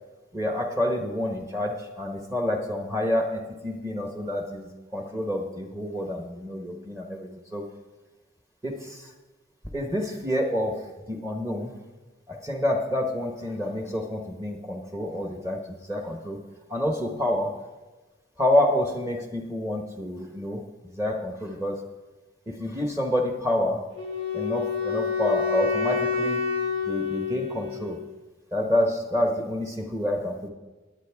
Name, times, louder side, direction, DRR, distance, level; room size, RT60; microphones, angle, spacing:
voice 1, 0.3-7.6 8.6-9.1 9.7-11.7 12.3-16.4 16.7-17.5 18.4-21.8 22.5-23.8 24.3-26.4 26.9-28.0 28.5-30.5, left 1 dB, 15° right, 3 dB, 1.1 m, -28 dB
Wind instrument woodwind instrument, 23.9-28.1, left 6 dB, 80° right, 2.7 m, -28 dB
18.5 x 8.8 x 3.5 m, 1.2 s
head